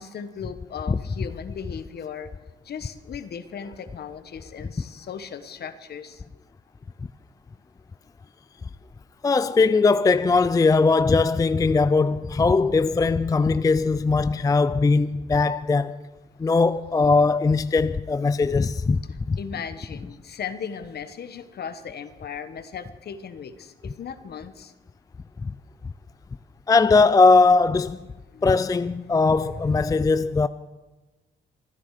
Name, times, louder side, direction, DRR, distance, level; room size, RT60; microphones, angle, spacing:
voice 1, 0.0-2.3 2.6-6.2 13.5-13.6 19.1-24.7 28.3-28.6 29.0-29.5, left 7 dB, 55° left, 1.3 m, -37 dB
voice 2, 9.2-16.0 16.4-19.0 19.3-19.4 25.4-25.5 26.7-28.0 28.4-30.5, left 4 dB, 20° left, 0.4 m, -20 dB
25.0 x 10.0 x 5.0 m
cardioid pair, 90°, 20 cm